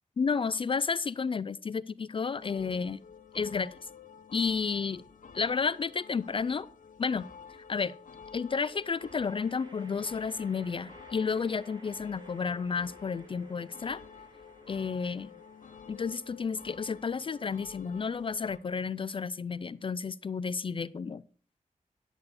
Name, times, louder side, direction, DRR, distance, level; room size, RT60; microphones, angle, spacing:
voice 1, 0.2-3.0 3.3-3.8 4.3-5.0 5.3-6.7 7.0-7.3 7.7-7.9 8.3-14.0 14.7-15.3 15.9-21.2, left 5 dB, 40° left, 17 dB, 0.3 m, -31 dB
sound 1, 2.4-18.6, left 6 dB, 80° left, 1.2 m, -51 dB
sound 2, 5.9-6.0 8.5-19.8, right 2 dB, 35° right, 1.3 m, -58 dB
10.5 x 8.2 x 4.1 m, 0.41 s
wide cardioid pair, 150°, 14 cm